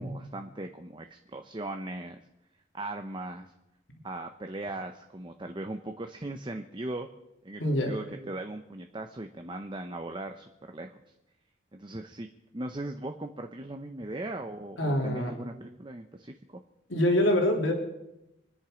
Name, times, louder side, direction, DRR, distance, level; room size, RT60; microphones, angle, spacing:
voice 1, 0.0-2.2 2.7-3.5 4.0-7.1 7.4-11.1 11.7-12.3 12.5-16.6, right 2 dB, 25° right, 5 dB, 0.8 m, -39 dB
voice 2, 7.6-7.9 14.8-15.3 16.9-17.7, left 1 dB, 85° left, 1 dB, 3.1 m, -25 dB
26.0 x 10.0 x 5.1 m, 0.93 s
head